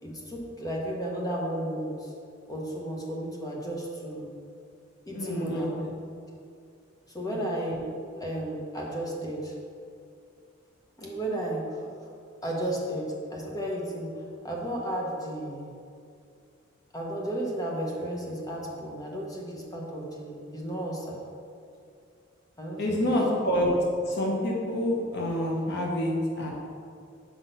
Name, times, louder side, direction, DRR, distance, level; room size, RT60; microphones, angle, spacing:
voice 1, 0.0-2.1 2.5-4.3 5.0-5.7 7.1-7.8 8.1-9.5 11.0-11.8 12.4-14.1 14.4-15.7 16.9-21.2 22.6-23.1, right 1 dB, 20° left, -2 dB, 1.0 m, -33 dB
voice 2, 5.1-6.0 7.2-7.4 22.8-23.7 24.1-26.5, equal, 55° left, -2 dB, 1.0 m, -28 dB
6.0 x 4.8 x 5.4 m, 2.4 s
head